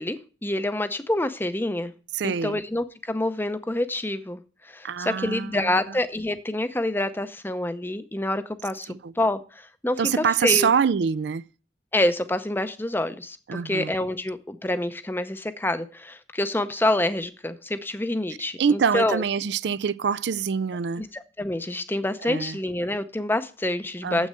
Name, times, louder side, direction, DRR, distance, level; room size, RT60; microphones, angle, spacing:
voice 1, 0.0-1.9 2.2-10.7 11.9-19.2 21.0-24.3, left 1 dB, 10° left, 0.6 m, -27 dB
voice 2, 2.1-2.6 4.8-6.0 8.9-9.1 10.0-11.5 13.5-13.9 18.6-21.0 22.2-22.6 24.0-24.3, right 6 dB, 65° right, 0.4 m, -25 dB
7.8 x 6.3 x 7.6 m
head